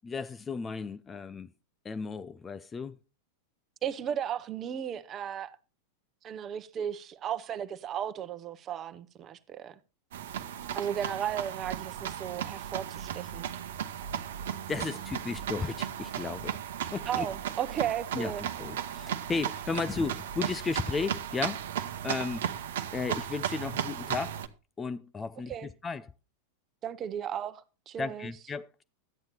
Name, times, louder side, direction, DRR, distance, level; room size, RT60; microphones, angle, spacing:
voice 1, 0.0-1.5 1.8-3.0 14.5-16.6 16.9-17.3 18.1-22.5 22.9-24.4 24.8-26.1 28.0-28.8, left 4 dB, 15° left, 0.5 m, -35 dB
voice 2, 3.8-5.6 6.2-9.8 10.7-13.5 17.1-18.4 25.5-25.7 26.8-28.3, right 9 dB, 30° right, 1.0 m, -35 dB
sound 1, 10.1-24.5, right 9 dB, 60° right, 0.9 m, -35 dB
13.0 x 9.1 x 4.3 m
figure-of-eight pair, 90°, 0 cm